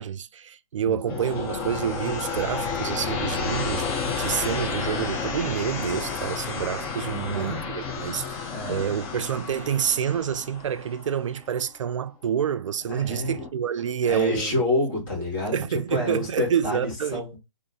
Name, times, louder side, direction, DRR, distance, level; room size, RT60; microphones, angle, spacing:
voice 1, 0.0-14.6 15.5-17.2, right 8 dB, 60° right, 0.4 m, -28 dB
voice 2, 0.8-1.2 7.0-7.6 8.0-8.1 8.5-8.9 12.9-13.4 14.0-17.4, left 2 dB, 35° left, 1.6 m, -29 dB
sound 1, 1.1-11.8 12.9-13.5, left 5 dB, 15° left, 0.4 m, -31 dB
2.5 x 2.5 x 3.7 m
hypercardioid pair, 145°, 18 cm